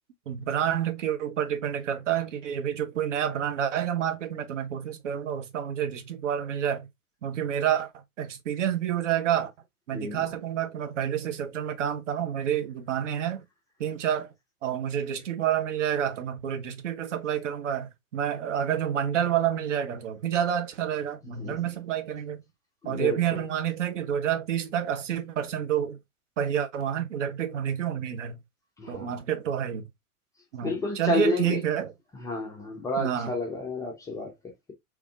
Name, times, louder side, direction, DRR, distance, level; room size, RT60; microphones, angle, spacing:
voice 1, 0.3-6.9 7.2-7.9 8.2-9.5 9.9-13.4 13.8-14.3 14.6-22.4 22.8-26.0 26.4-28.4 28.9-29.8 30.5-31.9 33.0-33.3, right 9 dB, 55° right, 0.8 m, -28 dB
voice 2, 9.9-10.2 21.4-21.7 22.8-23.4 28.8-29.2 30.6-31.6 32.1-34.3, left 2 dB, 10° left, 0.4 m, -31 dB
3.4 x 3.1 x 2.4 m
figure-of-eight pair, 95°, 44 cm